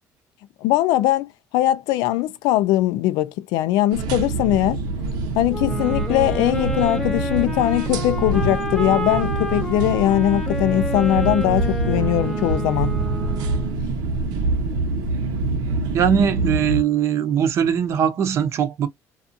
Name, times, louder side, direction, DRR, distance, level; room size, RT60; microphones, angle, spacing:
voice 1, 0.6-4.8 5.4-12.9, left 14 dB, 85° left, 0.4 m, -20 dB
sound 1, 3.9-16.8, right 3 dB, 85° right, 0.8 m, -25 dB
Wind instrument woodwind instrument, 5.5-13.8, equal, 5° left, 0.6 m, -30 dB
voice 2, 15.9-18.9, right 8 dB, 45° right, 0.7 m, -20 dB
2.5 x 2.3 x 2.6 m
cardioid pair, 160°, 7 cm